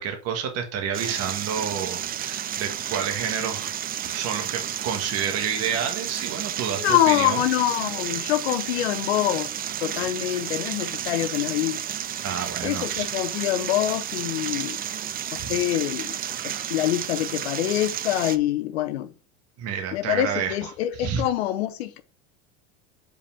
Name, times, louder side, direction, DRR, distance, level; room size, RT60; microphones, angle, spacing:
voice 1, 0.0-3.7 4.1-7.4 12.2-13.1 15.3-15.5 19.6-21.2, right 7 dB, 50° right, 1.6 m, -29 dB
sound 1, 0.9-18.4, right 10 dB, 30° right, 0.5 m, -32 dB
voice 2, 6.8-9.5 9.8-11.8 12.6-14.8 15.3-16.2 16.4-19.1 19.9-22.0, left 13 dB, 80° left, 0.9 m, -25 dB
5.2 x 5.1 x 5.6 m
hypercardioid pair, 95°, 31 cm